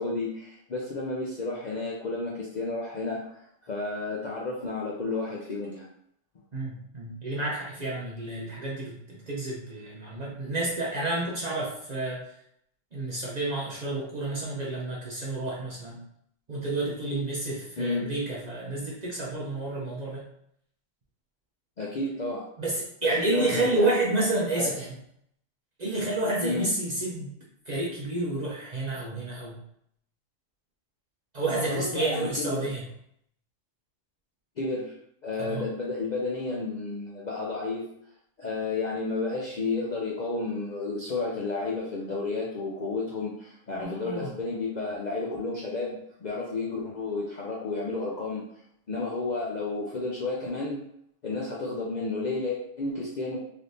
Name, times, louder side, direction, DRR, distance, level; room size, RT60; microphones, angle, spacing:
voice 1, 0.0-5.9 17.8-18.1 21.8-22.5 23.0-24.2 24.5-24.8 26.4-26.7 31.5-32.7 34.6-34.9 35.2-37.9 38.4-48.5 48.9-50.8 51.2-53.4, left 3 dB, 50° left, -4 dB, 0.5 m, -32 dB
voice 2, 6.5-12.2 12.9-16.0 16.5-20.2 22.6-24.9 25.8-27.3 27.7-29.6 31.3-32.8 35.4-35.6 43.8-44.3, right 2 dB, 45° right, -5 dB, 0.6 m, -30 dB
3.3 x 3.0 x 2.6 m, 0.70 s
omnidirectional pair, 1.3 m